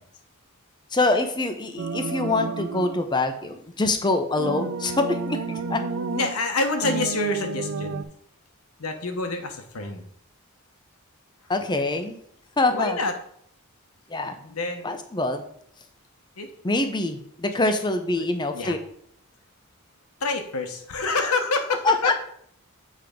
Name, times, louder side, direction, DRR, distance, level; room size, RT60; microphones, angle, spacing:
voice 1, 0.9-5.8 11.5-12.2 12.6-13.0 14.1-14.4 14.8-15.4 16.6-18.8 21.8-22.1, left 2 dB, 20° left, 7 dB, 0.7 m, -25 dB
sound 1, 1.8-3.0 4.4-6.4 6.8-8.0, right 4 dB, 65° right, 0.5 m, -31 dB
voice 2, 6.1-8.0 8.8-10.0 12.7-13.1 14.4-15.0 16.4-16.5 17.6-17.7 18.1-18.3 18.5-18.8 20.2-22.1, left 3 dB, 80° left, 6 dB, 1.1 m, -27 dB
7.7 x 3.7 x 5.1 m, 0.66 s
head